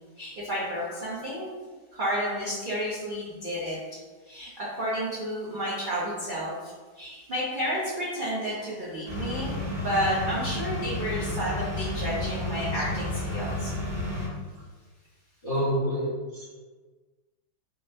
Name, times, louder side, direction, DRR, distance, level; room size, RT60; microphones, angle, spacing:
voice 1, 0.2-1.5 1.9-3.8 4.2-9.5 9.8-13.7, equal, 60° right, -9 dB, 0.5 m, -31 dB
sound 1, 9.1-14.3, left 1 dB, 75° right, 1.9 m, -31 dB
voice 2, 15.4-16.6, equal, 30° left, -10 dB, 0.6 m, -28 dB
3.9 x 2.1 x 2.5 m, 1.3 s
omnidirectional pair, 1.9 m